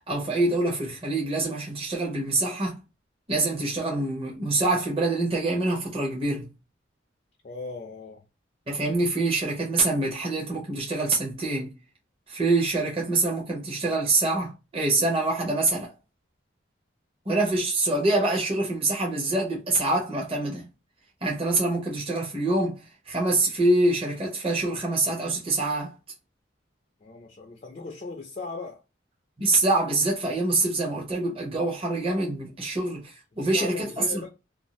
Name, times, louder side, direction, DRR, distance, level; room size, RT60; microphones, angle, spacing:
voice 1, 0.1-2.8 3.3-6.5 8.7-11.8 12.3-15.9 17.3-20.6 21.2-25.9 29.4-34.2, right 2 dB, 30° right, 0.8 m, -25 dB
voice 2, 7.4-8.2 27.0-28.8 32.6-32.7 33.4-34.3, left 3 dB, 40° left, 0.4 m, -38 dB
2.6 x 2.4 x 2.9 m
head